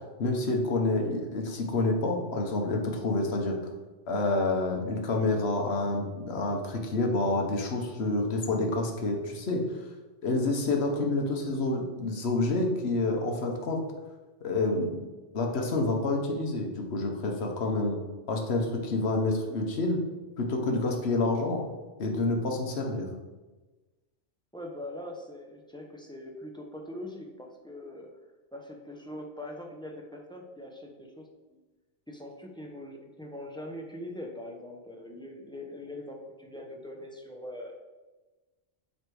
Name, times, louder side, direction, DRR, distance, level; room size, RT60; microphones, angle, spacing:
voice 1, 0.2-3.6 4.1-9.6 10.2-13.8 14.4-15.1 15.3-18.0 18.3-20.0 20.4-21.6 22.0-23.1, left 2 dB, 65° left, 2 dB, 1.2 m, -28 dB
voice 2, 24.5-28.1 28.5-31.6 32.1-37.8, left 1 dB, 5° left, 1 dB, 0.6 m, -42 dB
7.9 x 3.3 x 4.7 m, 1.2 s
omnidirectional pair, 1.2 m